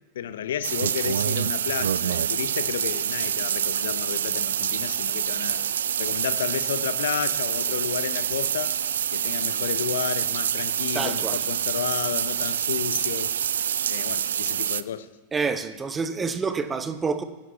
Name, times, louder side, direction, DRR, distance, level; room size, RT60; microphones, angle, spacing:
voice 1, 0.1-5.6 6.0-8.8 9.1-13.4 13.9-15.1, left 9 dB, 60° left, 0.7 m, -32 dB
sound 1, 0.6-14.8, right 9 dB, 65° right, 0.4 m, -26 dB
voice 2, 10.9-11.5 15.3-17.2, right 5 dB, 15° right, 0.9 m, -28 dB
18.5 x 15.0 x 3.2 m
figure-of-eight pair, 90°, 0 cm